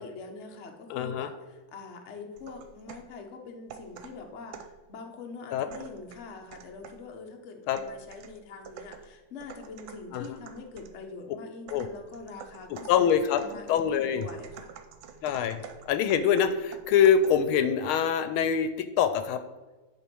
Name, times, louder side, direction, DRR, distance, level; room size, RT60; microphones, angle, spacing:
voice 1, 0.0-14.7, left 4 dB, 45° left, 3 dB, 0.9 m, -44 dB
voice 2, 0.9-1.3 5.5-5.7 7.7-7.8 10.1-10.4 11.7-11.9 12.7-13.4 13.7-14.3 15.2-19.4, left 8 dB, 80° left, 10 dB, 1.4 m, -25 dB
sound 1, 2.4-3.2 3.7-4.8 5.7-7.1 7.8-11.0 11.7-17.5, right 7 dB, 75° right, 1.4 m, -48 dB
10.0 x 3.5 x 6.1 m, 1.2 s
omnidirectional pair, 2.3 m